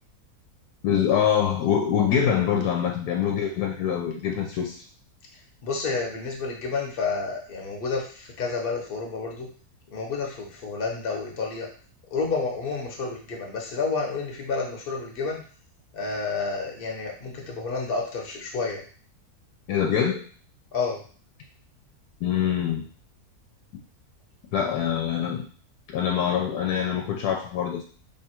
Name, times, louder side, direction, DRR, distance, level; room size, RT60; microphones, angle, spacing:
voice 1, 0.8-4.8 19.7-20.2 22.2-22.8 24.5-25.4 25.9-27.8, left 8 dB, 85° left, 1 dB, 1.1 m, -24 dB
voice 2, 5.3-9.5 9.9-11.7 12.1-15.4 15.9-18.8 20.7-21.0 24.5-24.6, left 4 dB, 45° left, 0 dB, 0.9 m, -30 dB
3.1 x 2.4 x 4.3 m, 0.43 s
omnidirectional pair, 1.7 m